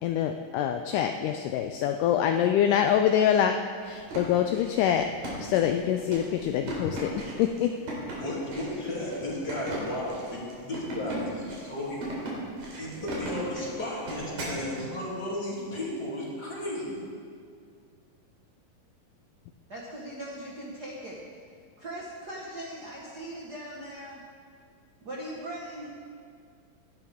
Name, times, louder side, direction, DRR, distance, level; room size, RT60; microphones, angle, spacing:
voice 1, 0.0-5.1 5.4-7.8, left 9 dB, 80° left, 6 dB, 1.9 m, -25 dB
sound 1, 3.9-14.6, right 1 dB, 75° right, 4.7 m, -38 dB
voice 2, 8.2-12.0 12.8-17.0, left 1 dB, 30° left, -6 dB, 3.1 m, -34 dB
voice 3, 19.7-21.2 21.8-24.2 25.0-25.9, right 1 dB, 60° right, -4 dB, 1.0 m, -39 dB
18.0 x 11.0 x 3.6 m, 2.2 s
omnidirectional pair, 4.0 m